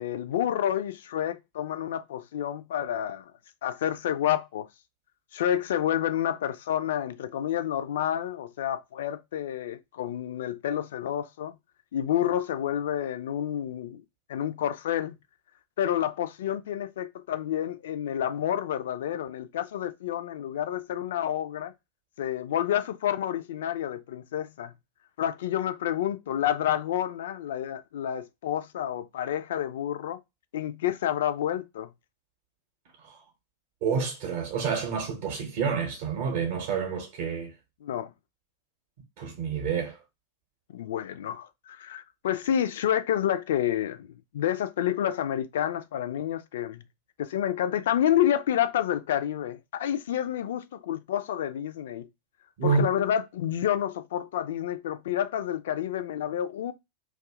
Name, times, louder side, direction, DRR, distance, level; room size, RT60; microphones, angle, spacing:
voice 1, 0.0-3.2 3.6-4.7 5.3-11.5 11.9-14.0 14.3-15.2 15.8-21.7 22.2-24.7 25.2-30.2 30.5-31.9 37.8-38.1 40.7-44.1 44.3-46.8 47.2-52.1 52.6-56.7, left 10 dB, 60° left, 0.3 m, -29 dB
voice 2, 33.8-37.5 39.2-40.0 52.6-52.8, right 6 dB, 50° right, 0.7 m, -28 dB
2.6 x 2.3 x 3.5 m
figure-of-eight pair, 90°, 0 cm